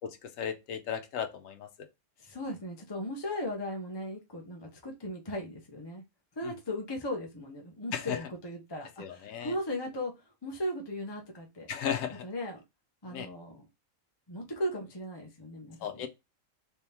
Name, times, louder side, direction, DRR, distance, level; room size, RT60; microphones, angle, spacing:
voice 1, 0.0-1.7 7.9-8.2 9.0-9.5 11.7-12.2 13.1-13.3 15.8-16.1, left 8 dB, 90° left, 1.1 m, -35 dB
voice 2, 2.2-6.0 6.4-11.7 12.2-12.6 13.0-13.7 14.3-16.1, left 1 dB, 25° left, 0.7 m, -37 dB
3.5 x 3.3 x 2.9 m
omnidirectional pair, 1.4 m